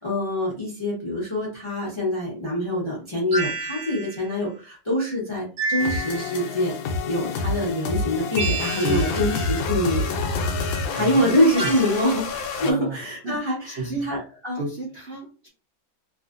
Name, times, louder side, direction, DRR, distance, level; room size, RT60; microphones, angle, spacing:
voice 1, 0.0-6.7 7.1-10.0 10.9-14.6, left 1 dB, 30° left, -5 dB, 0.5 m, -25 dB
sound 1, 3.3-4.3 5.6-6.5 8.4-9.3 11.6-12.1, right 3 dB, 50° right, 1.3 m, -30 dB
sound 2, 5.8-12.7, left 3 dB, 80° left, 1.4 m, -28 dB
voice 2, 8.8-9.6 10.9-11.8 12.6-13.0 13.2-14.1 14.5-15.5, right 3 dB, 80° right, -3 dB, 0.5 m, -32 dB
3.1 x 2.6 x 2.5 m, 0.35 s
omnidirectional pair, 2.1 m